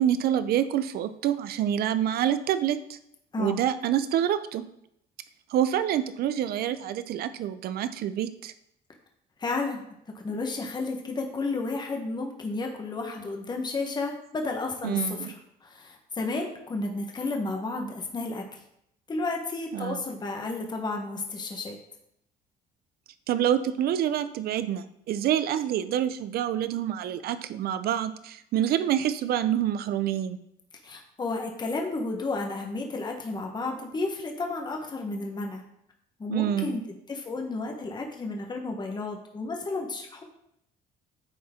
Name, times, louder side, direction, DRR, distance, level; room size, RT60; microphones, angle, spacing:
voice 1, 0.0-3.0 3.4-4.6 5.5-8.5 14.8-15.3 19.7-20.0 23.3-30.4 36.3-36.8, right 10 dB, 65° right, 13 dB, 0.6 m, -27 dB
voice 2, 9.4-9.8 10.1-15.3 15.6-18.4 19.1-21.8 30.8-35.6 36.2-36.8 37.1-40.2, left 3 dB, 25° left, 2 dB, 1.2 m, -32 dB
10.0 x 4.3 x 3.7 m, 0.76 s
cardioid pair, 110°, 17 cm